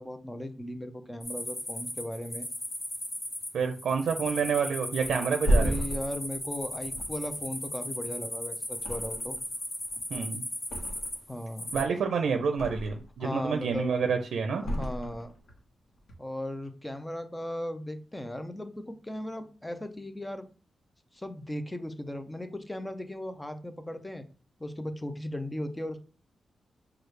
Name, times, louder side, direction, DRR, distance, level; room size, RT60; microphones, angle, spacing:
voice 1, 0.0-2.5 5.4-9.4 11.3-11.7 13.2-13.9 14.6-15.3 16.2-20.5 21.1-24.2 24.6-26.0, left 1 dB, 10° left, 9 dB, 0.4 m, -37 dB
sound 1, 1.2-11.8, left 1 dB, 30° left, 0.9 m, -37 dB
voice 2, 3.5-5.7 10.1-10.4 11.7-14.6, right 6 dB, 80° right, 5 dB, 0.5 m, -28 dB
Thump thud, 5.0-8.3 8.7-9.5 9.8-11.3 11.6-13.2 13.5-14.1 14.6-15.6 15.9-16.1, equal, 70° left, 1.0 m, -32 dB
6.2 x 2.3 x 3.2 m, 0.37 s
wide cardioid pair, 170°, 0 cm